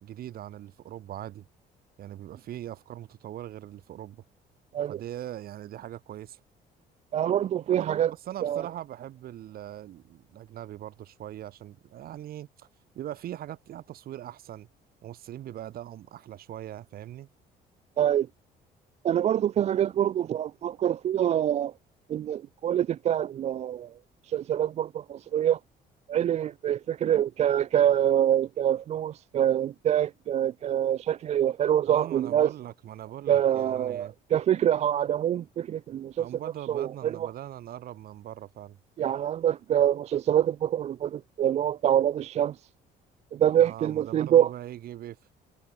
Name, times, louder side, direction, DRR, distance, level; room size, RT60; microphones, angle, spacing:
voice 1, 0.0-1.5 2.0-4.2 4.9-6.4 7.7-12.7 12.9-14.7 15.0-17.3 31.9-34.1 36.2-38.8 43.6-45.2, right 12 dB, 65° right, 2.2 m, -41 dB
voice 2, 7.1-8.1 8.4-8.6 18.0-18.3 19.0-21.7 22.1-23.9 24.3-25.6 26.1-32.5 33.3-36.3 36.7-37.3 39.0-42.6 43.3-44.5, right 10 dB, 40° right, 0.4 m, -25 dB
cardioid pair, 110°, 17 cm